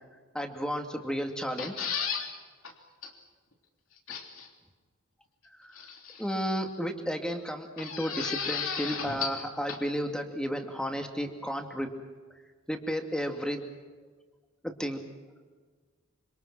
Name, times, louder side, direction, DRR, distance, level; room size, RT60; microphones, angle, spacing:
voice 1, 0.3-1.9 5.6-5.9 6.2-11.9 12.7-13.6 14.6-15.0, equal, 5° left, 4 dB, 2.4 m, -33 dB
sound 1, 1.4-2.3 2.6-2.7 3.0-3.1 4.1-4.5 5.8-6.4 7.8-9.4 9.7-9.8, left 6 dB, 80° left, 3.2 m, -34 dB
26.5 x 25.5 x 6.1 m, 1.4 s
head